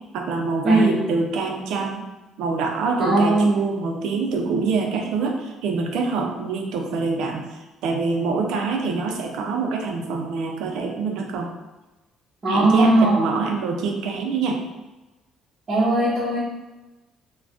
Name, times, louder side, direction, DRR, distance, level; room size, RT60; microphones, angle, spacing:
voice 1, 0.1-2.0 2.4-11.5 12.5-14.6, right 4 dB, 85° right, 2 dB, 0.5 m, -25 dB
voice 2, 0.6-1.0 3.0-3.6 12.4-13.1 15.7-16.4, right 2 dB, 35° right, -9 dB, 0.8 m, -18 dB
2.5 x 2.2 x 3.4 m, 1.1 s
cardioid pair, 130°, 0 cm